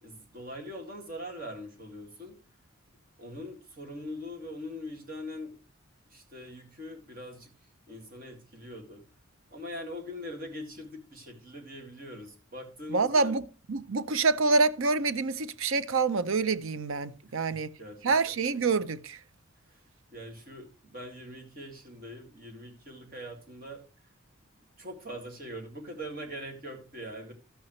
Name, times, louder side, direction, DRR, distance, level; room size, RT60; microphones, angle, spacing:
voice 1, 0.0-2.4 3.2-5.6 6.1-7.5 7.9-9.0 9.5-13.3 17.2-18.1 19.7-19.8 20.1-23.8 24.8-27.3, equal, 40° right, 2.1 m, -42 dB
voice 2, 12.9-13.4 13.7-17.7 18.0-19.2, right 4 dB, 70° right, 0.6 m, -26 dB
12.5 x 8.7 x 3.1 m
head